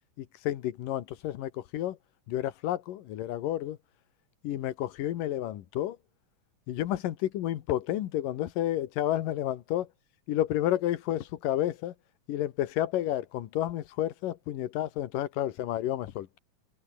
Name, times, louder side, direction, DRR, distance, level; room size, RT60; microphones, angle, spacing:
voice 1, 0.2-2.0 2.3-3.8 4.4-6.0 6.7-9.9 10.3-11.9 12.3-16.4, left 13 dB, 80° left, 3.0 m, -31 dB
omnidirectional pair, 3.9 m